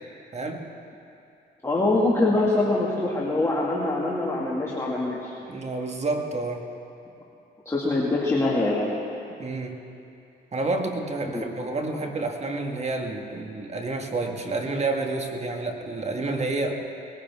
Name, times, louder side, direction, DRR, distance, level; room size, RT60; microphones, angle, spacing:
voice 1, 0.3-0.6 5.5-6.7 9.4-9.8 10.5-16.8, right 2 dB, 35° right, 3 dB, 1.7 m, -29 dB
voice 2, 1.6-5.3 7.7-8.9 11.3-11.4, left 2 dB, 15° left, -5 dB, 2.3 m, -24 dB
20.5 x 18.0 x 3.6 m, 2.6 s
cardioid pair, 90°, 20 cm